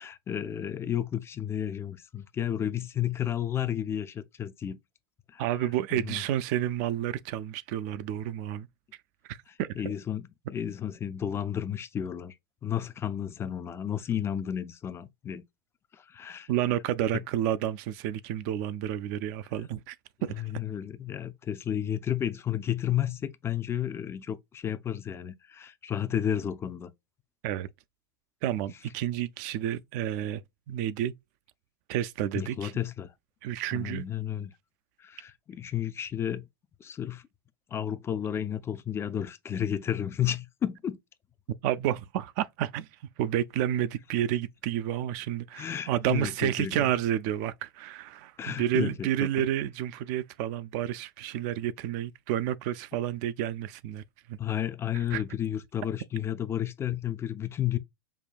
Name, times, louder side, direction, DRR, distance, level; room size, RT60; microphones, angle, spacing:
voice 1, 0.0-4.8 5.3-5.4 5.9-6.2 9.8-12.3 12.6-15.4 15.9-16.5 20.3-26.9 32.3-33.1 33.7-34.5 35.0-36.4 36.8-37.2 37.7-41.0 45.6-46.9 48.4-49.4 54.4-57.8, left 10 dB, 20° left, 0.4 m, -32 dB
voice 2, 5.4-8.7 9.3-9.8 16.5-20.0 20.2-20.3 27.4-27.7 28.4-31.1 31.9-32.7 33.4-34.1 41.6-42.9 43.2-54.0 54.3-54.4 55.1-55.2, right 11 dB, 50° right, 0.3 m, -30 dB
5.4 x 2.2 x 2.4 m
hypercardioid pair, 100°, 12 cm